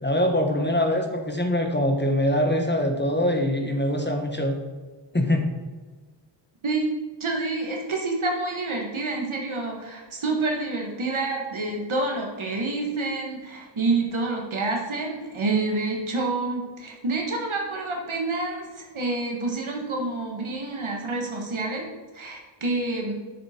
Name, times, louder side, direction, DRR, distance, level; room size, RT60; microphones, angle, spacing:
voice 1, 0.0-4.5 5.1-5.5, left 1 dB, 20° left, 3 dB, 1.3 m, -23 dB
voice 2, 7.2-21.9 22.1-23.1, right 3 dB, 85° right, 0 dB, 1.6 m, -28 dB
8.2 x 6.6 x 4.4 m, 1.3 s
wide cardioid pair, 60°, 47 cm